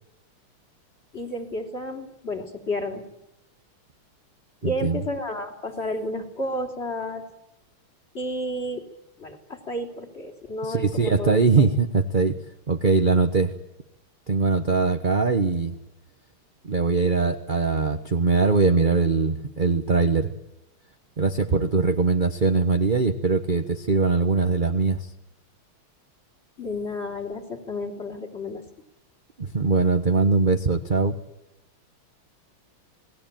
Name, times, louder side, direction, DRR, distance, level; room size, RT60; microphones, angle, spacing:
voice 1, 1.1-3.0 4.6-7.3 8.1-8.8 9.2-11.4 26.6-28.6, left 1 dB, 30° left, 6 dB, 3.6 m, -31 dB
voice 2, 4.6-5.0 10.6-12.3 12.7-13.5 14.3-15.8 16.6-20.3 21.2-25.1 29.4-31.1, right 4 dB, 30° right, 7 dB, 0.9 m, -21 dB
28.0 x 19.5 x 9.1 m, 0.87 s
omnidirectional pair, 2.3 m